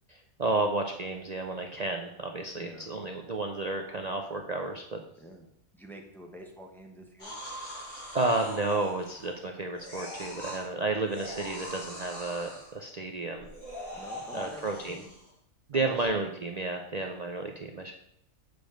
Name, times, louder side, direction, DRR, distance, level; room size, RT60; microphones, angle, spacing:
voice 1, 0.1-5.0 8.1-13.5 14.3-15.0 15.7-17.9, right 2 dB, 45° right, 3 dB, 0.5 m, -32 dB
voice 2, 2.5-2.9 5.2-5.5 5.7-7.4 13.9-15.1 15.7-16.0, right 1 dB, ahead, 1 dB, 1.0 m, -47 dB
sound 1, 7.2-9.4 9.8-10.6 11.1-12.7 13.4-15.3 15.9-16.1, equal, 85° left, 4.2 m, -42 dB
7.9 x 5.1 x 5.1 m, 0.74 s
omnidirectional pair, 1.4 m